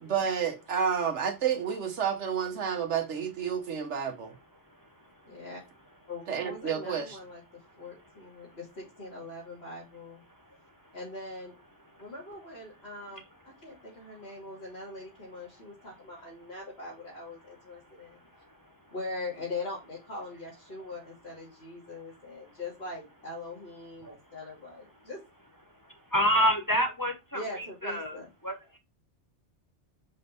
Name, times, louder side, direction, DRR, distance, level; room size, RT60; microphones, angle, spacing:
voice 1, 0.0-4.3 6.3-7.2, right 7 dB, 80° right, 1.4 m, -30 dB
voice 2, 5.3-5.6 6.1-10.2 10.9-11.5 12.0-18.2 18.9-25.2 27.3-28.3, left 2 dB, 60° left, 3.2 m, -42 dB
voice 3, 26.1-27.4 27.8-28.2 28.4-28.8, equal, 20° left, 1.2 m, -27 dB
5.4 x 5.3 x 4.1 m
omnidirectional pair, 1.2 m